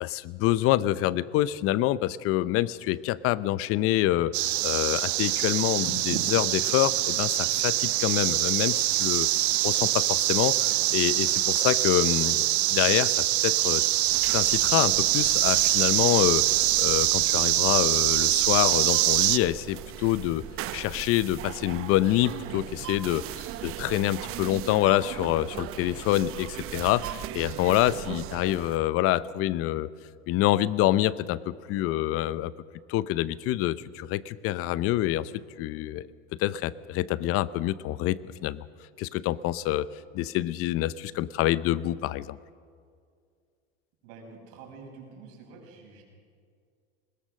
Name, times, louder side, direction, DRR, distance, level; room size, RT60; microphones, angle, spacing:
voice 1, 0.0-4.3 4.6-9.3 9.6-13.8 14.3-20.4 20.7-29.9 30.3-32.5 32.9-35.3 35.6-36.0 36.4-38.6 39.0-39.9 40.1-42.4, left 14 dB, 45° left, 17 dB, 0.7 m, -26 dB
sound 1, 4.3-19.4, right 16 dB, 85° right, 0.8 m, -24 dB
sound 2, 14.1-28.8, right 12 dB, 45° right, 1.0 m, -39 dB
voice 2, 44.0-46.0, right 4 dB, 65° right, 2 dB, 6.2 m, -47 dB
20.5 x 20.5 x 6.5 m, 2.1 s
supercardioid pair, 115°, 32 cm